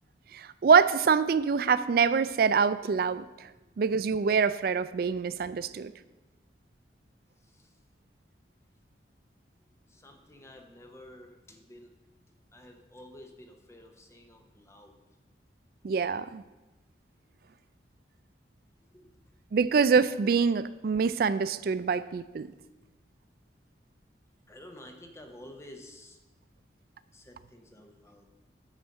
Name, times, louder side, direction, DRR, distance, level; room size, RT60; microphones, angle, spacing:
voice 1, 0.3-3.5 3.8-5.9 15.8-16.4 19.5-22.5, right 5 dB, 55° right, 15 dB, 0.3 m, -25 dB
voice 2, 9.9-11.9 12.5-14.9 18.9-19.1 24.5-26.2 27.1-28.3, left 1 dB, 15° left, 4 dB, 0.8 m, -51 dB
8.9 x 4.5 x 6.4 m, 1.1 s
head